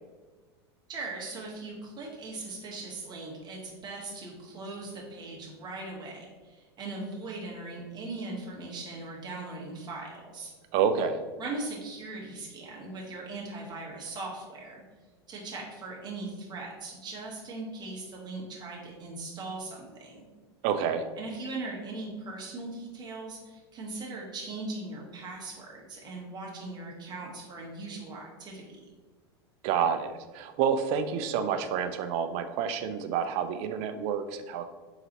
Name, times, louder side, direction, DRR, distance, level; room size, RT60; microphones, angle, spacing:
voice 1, 0.9-10.5 11.4-14.8 15.3-20.3 21.2-28.8, right 2 dB, 30° right, -2 dB, 1.3 m, -39 dB
voice 2, 10.7-11.2 20.6-21.0 29.6-34.7, right 7 dB, 50° right, 9 dB, 0.5 m, -28 dB
4.0 x 3.9 x 2.9 m, 1.3 s
hypercardioid pair, 100°, 14 cm